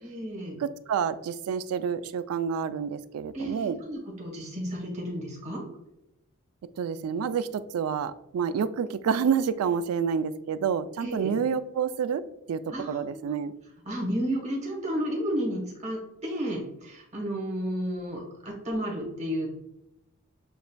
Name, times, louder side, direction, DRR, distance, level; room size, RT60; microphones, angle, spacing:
voice 1, 0.0-0.6 3.3-5.6 11.0-11.3 12.7-13.4 13.8-19.5, equal, 35° right, -1 dB, 1.2 m, -32 dB
voice 2, 0.6-3.8 6.8-12.2 12.5-12.6 12.9-13.5, right 7 dB, 80° right, 14 dB, 0.3 m, -28 dB
7.0 x 2.5 x 2.2 m, 0.86 s
head